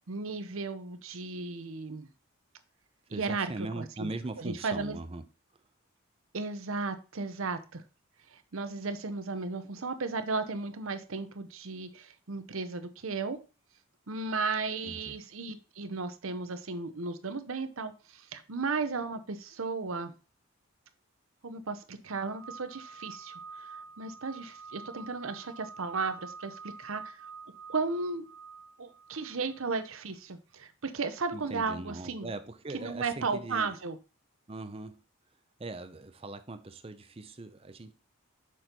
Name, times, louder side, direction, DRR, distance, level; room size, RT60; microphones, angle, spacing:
voice 1, 0.1-2.1 3.1-4.1 4.4-5.0 6.3-7.8 8.3-13.4 14.1-20.1 21.4-27.2 27.7-28.2 28.8-32.3 32.7-34.0, right 4 dB, 75° right, 0.8 m, -35 dB
voice 2, 3.1-5.2 14.8-15.2 31.3-33.8 34.5-35.0 35.6-37.9, right 2 dB, 25° right, 0.5 m, -40 dB
sound 1, 22.1-29.9, right 5 dB, 55° right, 1.1 m, -47 dB
6.2 x 4.5 x 5.2 m
head